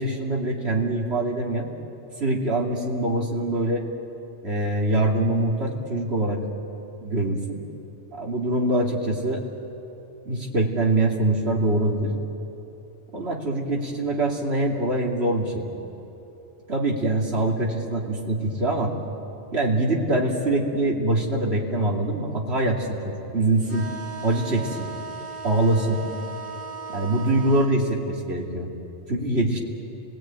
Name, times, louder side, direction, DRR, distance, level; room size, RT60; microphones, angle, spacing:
voice 1, 0.0-1.7 2.2-3.8 4.4-6.4 7.0-7.6 8.1-9.5 10.2-12.1 13.1-15.6 16.7-18.9 19.5-23.9 24.2-24.9 25.4-26.0 26.9-28.7 29.1-29.6, right 2 dB, 60° right, -1 dB, 3.0 m, -24 dB
sound 1, 23.6-27.7, right 5 dB, 10° left, 2.1 m, -37 dB
29.5 x 18.0 x 9.0 m, 2.9 s
omnidirectional pair, 1.2 m